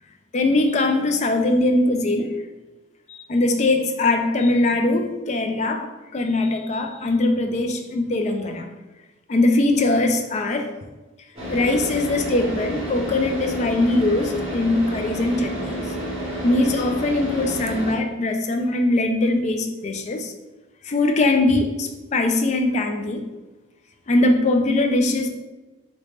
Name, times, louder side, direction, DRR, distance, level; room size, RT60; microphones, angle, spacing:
voice 1, 0.3-2.4 3.1-8.7 9.3-10.7 11.5-15.9 16.4-20.3 20.8-23.3 24.1-25.3, left 2 dB, 35° left, 5 dB, 0.3 m, -21 dB
Car / Idling, 11.4-17.9, equal, 30° right, 1.1 m, -30 dB
3.1 x 2.9 x 3.2 m, 1.1 s
head